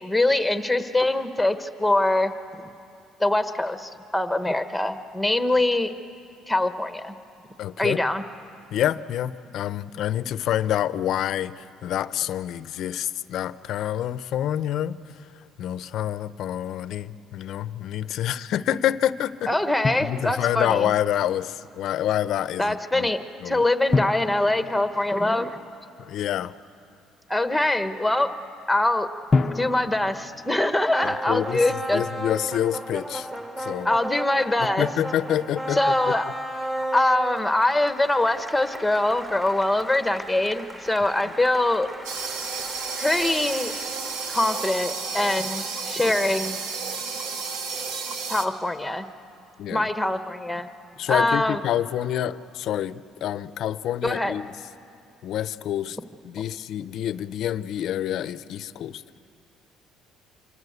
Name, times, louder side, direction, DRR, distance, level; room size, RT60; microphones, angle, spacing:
voice 1, 0.0-2.3 3.2-5.9 6.5-7.2 7.8-8.2 19.5-20.9 22.6-25.6 27.3-28.3 28.7-29.1 29.5-32.0 33.8-34.9 35.7-36.3 36.9-41.9 43.0-43.7 44.3-46.6 48.3-49.0 49.7-50.7 51.1-51.6 54.0-54.3, left 1 dB, 5° left, 9 dB, 1.2 m, -23 dB
voice 2, 7.6-8.0 8.7-15.0 15.6-19.6 20.0-23.1 23.4-23.6 26.0-26.5 31.0-31.6 31.9-33.3 33.6-33.9 34.6-36.2 49.6-49.9 51.0-54.5 55.2-56.0 56.2-59.0, left 11 dB, 65° left, 15 dB, 0.7 m, -27 dB
Drum, 19.8-20.9 23.9-25.8 29.3-31.3, left 3 dB, 30° left, 0.6 m, -29 dB
sound 1, 30.9-45.1, right 1 dB, 10° right, 1.8 m, -36 dB
sound 2, 42.0-48.5, right 5 dB, 85° right, 1.7 m, -32 dB
26.0 x 24.5 x 8.2 m, 2.6 s
cardioid pair, 120°, 0 cm